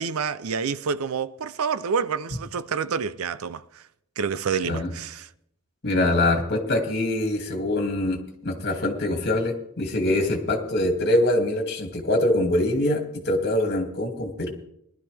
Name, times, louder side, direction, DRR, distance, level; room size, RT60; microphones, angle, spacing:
voice 1, 0.0-3.8 4.2-5.3, right 6 dB, 75° right, 0.5 m, -28 dB
voice 2, 5.8-14.5, left 1 dB, 50° left, 2.4 m, -24 dB
20.0 x 12.0 x 3.4 m
head